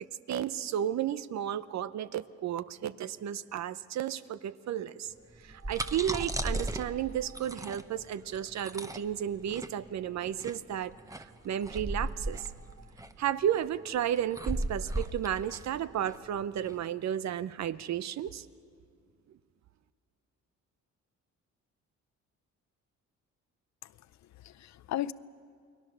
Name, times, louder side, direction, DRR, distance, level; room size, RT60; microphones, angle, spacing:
voice 1, 0.3-5.1 5.4-12.5 13.2-18.5, right 10 dB, 65° right, 15 dB, 0.8 m, -33 dB
sound 1, 5.3-16.7, right 1 dB, 10° right, 1.0 m, -37 dB
voice 2, 23.8-25.1, left 13 dB, 65° left, 17 dB, 0.6 m, -37 dB
29.5 x 20.5 x 6.8 m, 2.2 s
cardioid pair, 90°, 30 cm